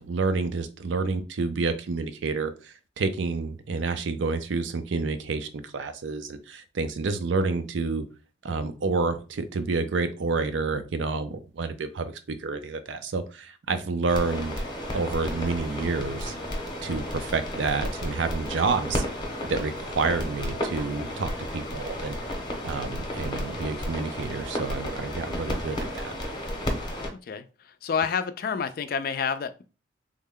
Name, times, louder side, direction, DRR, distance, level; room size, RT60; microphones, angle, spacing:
voice 1, 0.0-8.0 8.4-12.1 12.4-14.5 14.9-16.3 16.8-19.0 19.5-22.2 22.6-26.1, right 4 dB, 85° right, 0.5 m, -29 dB
sound 1, 14.1-27.1, equal, 25° left, 0.8 m, -32 dB
voice 2, 27.8-29.6, left 6 dB, 50° left, 0.3 m, -28 dB
3.5 x 2.2 x 3.5 m
head